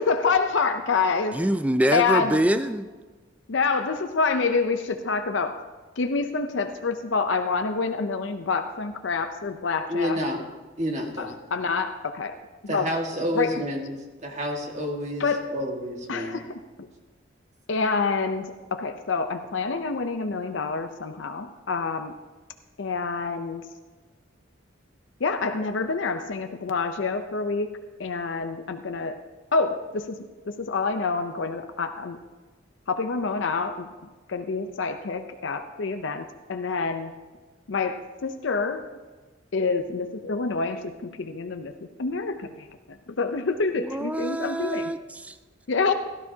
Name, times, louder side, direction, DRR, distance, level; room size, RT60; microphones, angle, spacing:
voice 1, 0.0-1.4 1.9-2.4 3.5-5.6 6.0-10.2 11.2-13.0 13.3-13.6 15.2-15.5 16.1-16.5 16.8-16.9 17.7-22.1 22.8-23.7 25.2-27.7 28.0-29.2 29.5-30.2 30.5-32.2 32.9-33.9 34.3-37.2 37.7-38.9 39.5-41.7 42.0-44.9 45.7-45.9, left 4 dB, 70° left, 7 dB, 0.6 m, -27 dB
voice 2, 1.3-2.9 43.8-45.0 45.2-45.3, right 1 dB, 5° right, 11 dB, 0.3 m, -25 dB
voice 3, 9.9-10.4 10.8-11.3 12.7-13.9 14.2-16.4, equal, 35° right, 1 dB, 1.7 m, -29 dB
16.5 x 13.0 x 2.8 m, 1.3 s
head